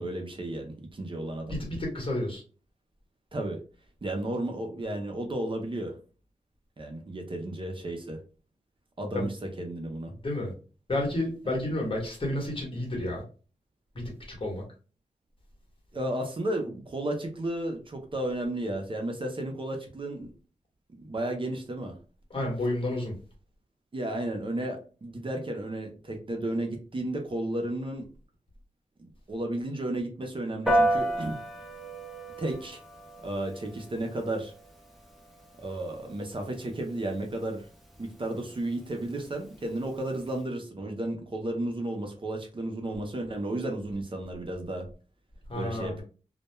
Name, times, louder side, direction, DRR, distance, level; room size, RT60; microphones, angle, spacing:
voice 1, 0.0-1.5 3.3-3.6 4.0-5.9 6.8-8.2 9.0-10.1 15.9-20.3 20.9-21.9 23.9-28.1 29.0-31.4 32.4-32.8 33.2-34.5 35.6-37.6 38.0-44.8 45.6-46.0, right 1 dB, 40° right, 3 dB, 0.6 m, -33 dB
voice 2, 1.5-2.4 9.1-9.2 10.2-10.5 10.9-13.2 13.9-14.6 22.3-23.1 45.5-46.0, left 1 dB, 45° left, -1 dB, 1.1 m, -31 dB
Piano, 30.7-40.4, right 1 dB, ahead, 0.6 m, -34 dB
2.2 x 2.2 x 2.9 m, 0.36 s
wide cardioid pair, 85°, 13 cm